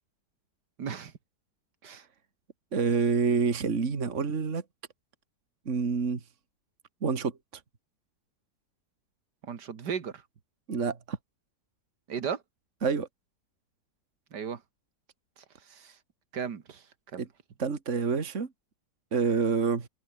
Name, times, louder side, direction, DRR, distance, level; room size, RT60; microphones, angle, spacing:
voice 1, 0.8-1.1 1.8-2.1 9.4-10.2 12.1-12.4 14.3-14.6 15.7-16.0 16.3-16.8 17.1-17.3, right 7 dB, 90° right, 2.4 m, -35 dB
voice 2, 2.7-4.6 5.7-6.2 7.0-7.3 10.7-11.2 12.8-13.1 17.2-17.3 17.6-18.5 19.1-19.9, right 5 dB, 45° right, 2.3 m, -27 dB
omnidirectional pair, 1.7 m